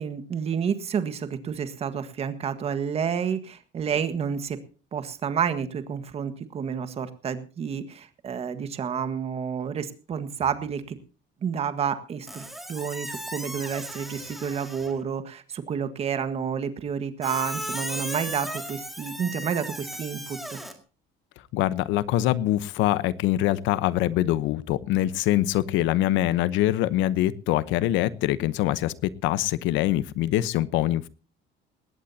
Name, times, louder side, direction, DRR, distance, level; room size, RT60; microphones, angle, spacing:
voice 1, 0.0-4.6 4.9-11.0 11.4-20.6, right 7 dB, 30° right, 10 dB, 1.6 m, -30 dB
Squeak, 12.3-15.0 17.2-20.7, equal, ahead, 2.1 m, -36 dB
voice 2, 21.5-31.1, left 14 dB, 85° left, 16 dB, 1.0 m, -24 dB
19.5 x 17.5 x 2.9 m, 0.35 s
cardioid pair, 175°, 19 cm